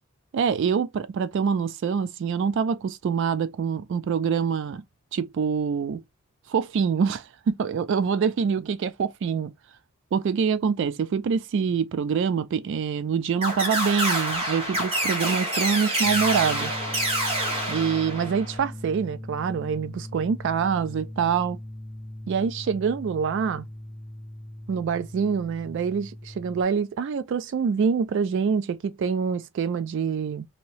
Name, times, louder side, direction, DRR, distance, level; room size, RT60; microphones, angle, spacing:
voice 1, 0.3-4.8 5.1-6.0 6.5-9.5 10.1-16.7 17.7-21.6 22.3-23.6 24.7-30.5, right 6 dB, 55° right, 0.3 m, -25 dB
sound 1, 13.4-18.6, right 1 dB, 25° right, 1.4 m, -27 dB
sound 2, 16.0-26.6, left 1 dB, 5° left, 1.1 m, -39 dB
2.8 x 2.7 x 2.9 m
head